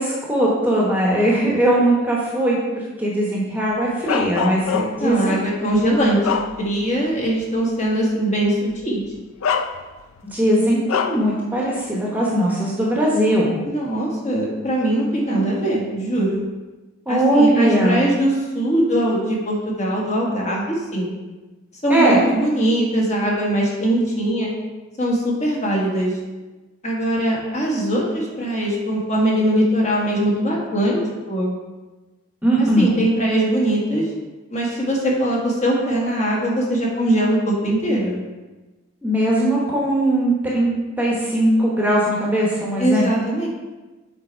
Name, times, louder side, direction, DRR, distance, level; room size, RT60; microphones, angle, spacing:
voice 1, 0.0-5.4 10.2-13.6 15.3-15.4 17.1-18.0 21.9-22.2 32.4-32.9 39.0-43.1, right 1 dB, 10° right, -5 dB, 1.0 m, -19 dB
Bark, 4.1-5.2 5.7-7.0 7.4-7.6 8.7-8.9 9.4-10.2 10.9-11.3, left 6 dB, 85° left, 0.4 m, -25 dB
voice 2, 5.0-8.6 8.8-9.0 13.6-16.4 17.1-21.1 21.8-24.5 25.0-26.2 26.8-31.0 31.3-31.5 32.6-34.1 34.5-38.2 42.8-43.5, right 1 dB, 35° left, -3 dB, 1.3 m, -21 dB
6.8 x 4.2 x 4.4 m, 1.2 s
head